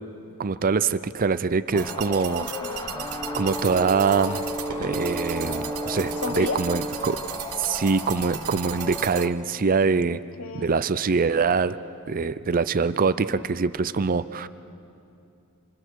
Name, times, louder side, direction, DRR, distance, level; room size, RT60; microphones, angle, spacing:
voice 1, 0.4-2.4 3.4-4.4 4.8-7.2 7.6-10.2 10.5-11.8 12.1-14.5, right 5 dB, 40° right, 14 dB, 0.5 m, -24 dB
sound 1, 1.7-9.3, left 2 dB, 20° left, 1.1 m, -36 dB
sound 2, 1.8-9.3, right 10 dB, 85° right, 0.9 m, -37 dB
voice 2, 2.4-3.1 6.2-6.6 10.1-10.8, left 4 dB, 65° left, 12 dB, 0.8 m, -34 dB
Brass instrument, 2.9-7.1, right 1 dB, 10° right, 0.8 m, -33 dB
27.5 x 27.0 x 4.6 m, 2.6 s
head